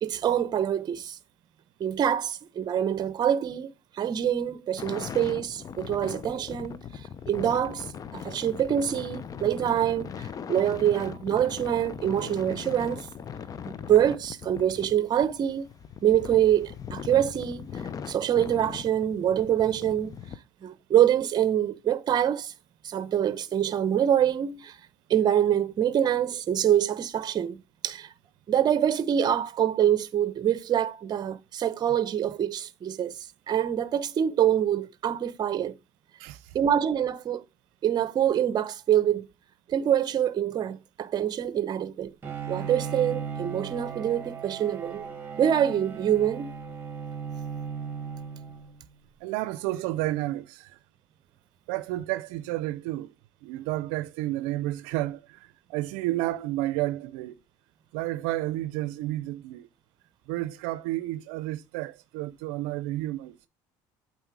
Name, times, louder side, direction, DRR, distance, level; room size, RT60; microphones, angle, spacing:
voice 1, 0.0-1.2 1.8-3.7 4.0-6.8 7.3-7.8 8.1-13.1 13.7-15.7 16.0-17.6 18.1-20.1 20.6-22.5 22.8-24.8 25.1-27.6 27.8-28.1 28.5-33.2 33.5-35.8 36.5-37.4 37.8-39.3 39.7-42.1 42.5-45.1 45.4-46.6, right 10 dB, 45° right, 0.9 m, -25 dB
sound 1, 4.8-20.4, left 7 dB, 40° left, 0.6 m, -40 dB
voice 2, 36.2-36.6 49.2-50.8 51.7-53.1 53.4-57.4 57.9-59.7 60.3-63.5, right 16 dB, 85° right, 0.5 m, -31 dB
Bowed string instrument, 42.2-48.9, right 6 dB, 25° right, 2.8 m, -37 dB
8.0 x 4.2 x 4.6 m
supercardioid pair, 95°, 10 cm